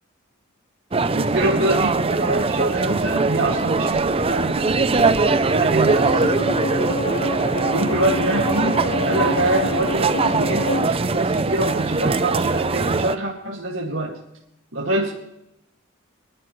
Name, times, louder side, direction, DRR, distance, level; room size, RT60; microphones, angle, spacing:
sound 1, 0.9-13.2, right 3 dB, 30° right, 0.6 m, -21 dB
voice 1, 1.1-6.3 7.4-14.2 14.7-15.1, right 1 dB, 70° right, -3 dB, 2.3 m, -25 dB
Bowed string instrument, 5.8-10.9, left 1 dB, 65° left, 2.3 m, -27 dB
26.0 x 11.5 x 3.2 m, 0.84 s
head